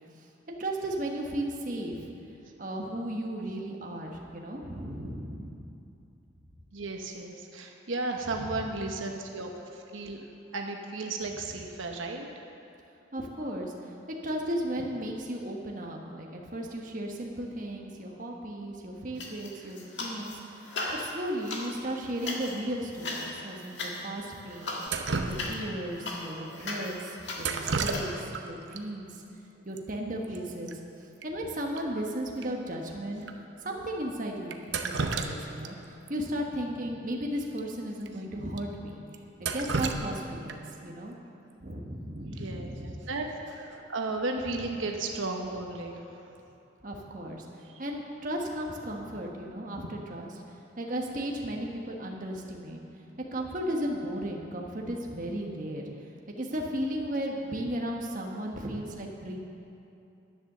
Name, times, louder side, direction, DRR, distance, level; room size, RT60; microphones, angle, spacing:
voice 1, 0.5-2.1 2.6-5.7 8.3-8.6 13.1-13.9 14.2-29.2 29.6-30.8 31.2-33.2 33.6-34.5 34.8-39.0 39.4-41.1 41.6-43.0 46.8-47.4 47.8-52.8 53.3-55.8 56.4-59.4, right 1 dB, 40° right, 0 dB, 1.3 m, -35 dB
voice 2, 6.7-10.2 10.5-12.3 42.3-43.3 43.5-46.3 47.7-47.8, right 3 dB, 80° right, 2 dB, 1.1 m, -34 dB
sound 1, 19.2-20.4 20.6-28.1, left 2 dB, 60° left, 1.7 m, -38 dB
Drip, 24.9-25.9 27.4-28.4 28.7-28.8 29.8-29.9 30.1-30.4 30.7-30.8 31.2-31.3 31.8-31.9 32.4-32.5 33.2-33.3 34.5-35.7 36.1-36.2 37.5-37.6 38.0-38.1 38.6-38.7 39.1-40.8 42.8-43.1 43.5-43.9, right 4 dB, 65° right, 0.8 m, -32 dB
11.0 x 9.8 x 6.7 m, 2.7 s
head